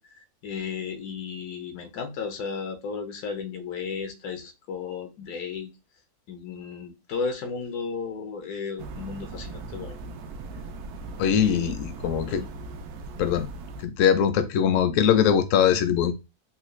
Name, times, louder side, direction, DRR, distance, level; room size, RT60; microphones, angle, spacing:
voice 1, 0.4-5.7 6.3-10.0 11.2-11.7 12.3-12.5, left 5 dB, 80° left, 1.2 m, -34 dB
sound 1, 8.8-13.9, right 3 dB, 85° right, 1.1 m, -39 dB
voice 2, 11.2-12.4 13.2-13.5 13.8-16.1, left 8 dB, 65° left, 0.9 m, -22 dB
4.0 x 2.3 x 3.1 m
omnidirectional pair, 1.6 m